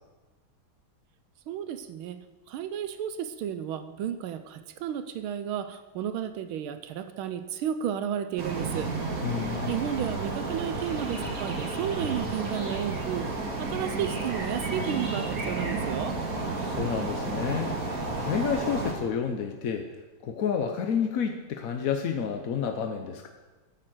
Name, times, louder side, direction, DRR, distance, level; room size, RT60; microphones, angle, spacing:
voice 1, 1.5-2.2 2.5-8.9 9.7-13.3 13.6-16.1, right 9 dB, 80° right, 10 dB, 1.5 m, -32 dB
sound 1, 8.4-18.9, right 3 dB, 45° right, 2.1 m, -32 dB
voice 2, 9.2-9.8 16.6-17.8 18.2-19.9 20.2-23.3, left 7 dB, 60° left, 5 dB, 0.9 m, -30 dB
13.5 x 6.7 x 7.7 m, 1.3 s
omnidirectional pair, 2.3 m